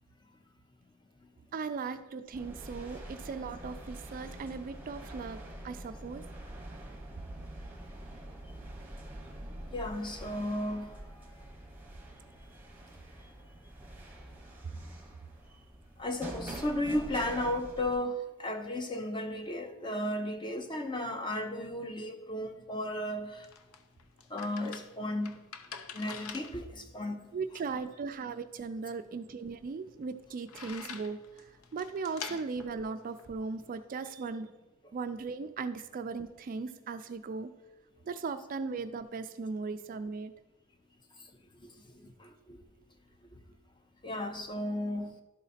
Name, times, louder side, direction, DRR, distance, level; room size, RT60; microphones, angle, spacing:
voice 1, 1.5-6.2 27.3-34.5 34.9-37.5 38.0-40.3, right 4 dB, 40° right, 10 dB, 0.3 m, -38 dB
sound 1, 2.3-18.0, right 1 dB, 10° right, 1.0 m, -46 dB
voice 2, 9.7-10.9 16.0-23.5 24.3-25.4 25.9-27.2 41.6-41.7 42.0-42.6 44.0-45.1, left 1 dB, 20° left, 6 dB, 0.6 m, -34 dB
sound 2, 23.0-33.9, left 6 dB, 80° left, 0.7 m, -48 dB
12.0 x 3.9 x 4.1 m, 1.1 s
head